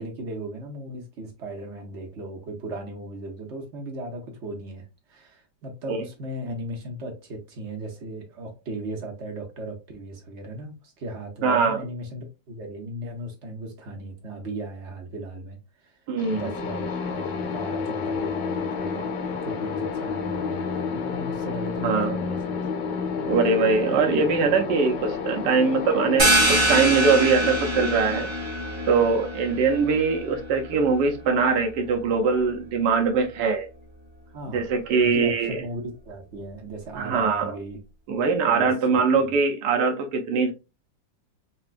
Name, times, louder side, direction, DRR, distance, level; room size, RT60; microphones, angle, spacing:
voice 1, 0.0-16.0 16.3-22.6 34.3-37.8 38.5-39.4, right 1 dB, 55° right, 0.8 m, -37 dB
voice 2, 11.4-11.8 16.1-16.4 21.8-22.2 23.3-28.3 28.9-33.7 34.5-35.6 36.9-37.4 38.1-40.5, right 5 dB, 75° right, 1.2 m, -22 dB
sound 1, 16.2-29.8, left 5 dB, 80° left, 1.4 m, -31 dB
sound 2, 26.2-31.6, right 1 dB, 25° right, 0.6 m, -25 dB
4.2 x 2.2 x 2.4 m
omnidirectional pair, 2.0 m